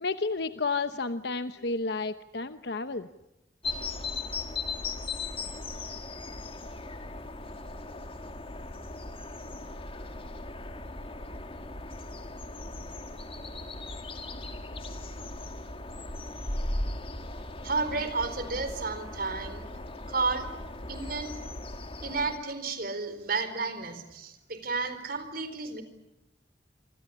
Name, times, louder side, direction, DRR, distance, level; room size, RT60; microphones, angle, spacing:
voice 1, 0.0-3.1, left 3 dB, 65° left, 10 dB, 1.0 m, -31 dB
sound 1, 3.6-22.4, left 2 dB, 35° left, 2.5 m, -38 dB
voice 2, 17.6-19.7 20.1-20.5 20.9-21.3 22.0-25.8, right 4 dB, 55° right, 10 dB, 4.4 m, -32 dB
26.5 x 26.5 x 8.5 m, 0.91 s
head